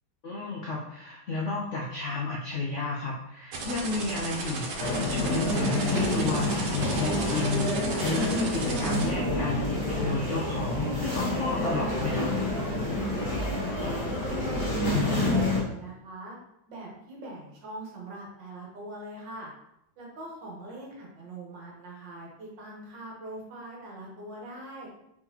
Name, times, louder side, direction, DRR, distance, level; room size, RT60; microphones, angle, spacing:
voice 1, 0.2-4.7 4.9-7.7 8.0-12.3, left 3 dB, 90° left, -3 dB, 0.6 m, -32 dB
sound 1, 3.5-9.0, right 3 dB, 90° right, 1.7 m, -35 dB
sound 2, 4.8-15.6, left 1 dB, 40° left, 1.9 m, -28 dB
voice 2, 13.6-13.9 14.3-16.4 16.7-19.5 20.0-24.9, right 1 dB, 65° right, -3 dB, 1.8 m, -42 dB
4.4 x 3.8 x 2.9 m, 0.82 s
omnidirectional pair, 2.2 m